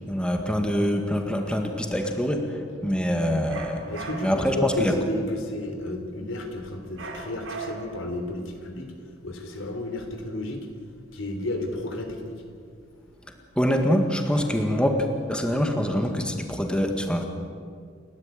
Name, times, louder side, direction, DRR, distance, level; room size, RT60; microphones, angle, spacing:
voice 1, 0.1-3.9 4.2-4.9 13.6-17.3, equal, 5° left, 4 dB, 1.9 m, -25 dB
sound 1, 3.5-4.5 7.0-8.1, right 4 dB, 85° right, 3.8 m, -38 dB
voice 2, 3.9-10.6 11.1-12.4, left 1 dB, 85° left, 5 dB, 3.6 m, -32 dB
29.5 x 12.5 x 9.3 m, 2.2 s
head